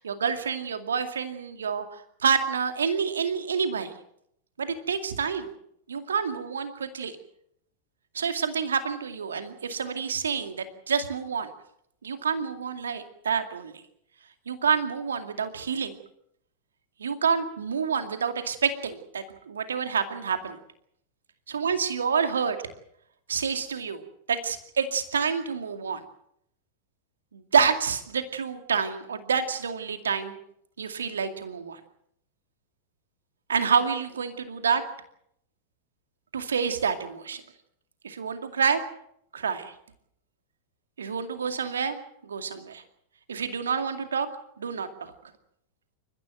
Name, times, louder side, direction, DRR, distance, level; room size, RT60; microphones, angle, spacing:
voice 1, 0.0-3.9 4.6-5.5 5.9-7.2 8.1-11.5 12.0-13.8 14.5-16.0 17.0-20.6 21.5-22.6 23.3-24.0 24.3-26.0 27.3-30.4 30.8-31.8 33.5-34.8 36.3-37.4 38.0-38.8 39.3-39.7 41.0-42.0 42.2-42.8 43.3-44.3 44.6-45.1, right 6 dB, 70° right, 8 dB, 2.3 m, -28 dB
29.0 x 15.0 x 7.7 m, 0.73 s
figure-of-eight pair, 90°, 0 cm